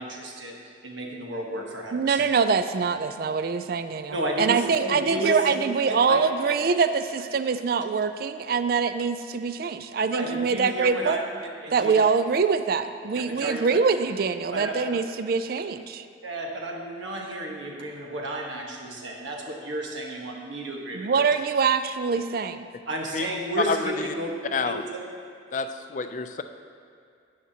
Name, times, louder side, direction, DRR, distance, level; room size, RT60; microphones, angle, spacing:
voice 1, 0.0-2.2 4.1-5.5 5.9-6.6 10.1-12.0 13.1-13.6 14.5-15.0 16.2-21.2 22.9-24.3 24.6-25.0, right 1 dB, 85° right, 0 dB, 1.3 m, -32 dB
voice 2, 1.9-11.2 11.7-16.0 20.9-22.7, right 5 dB, 50° right, 11 dB, 0.3 m, -24 dB
voice 3, 23.7-24.1 24.5-24.8 25.5-26.4, left 4 dB, 40° left, 8 dB, 0.4 m, -29 dB
12.0 x 9.2 x 2.8 m, 2.3 s
head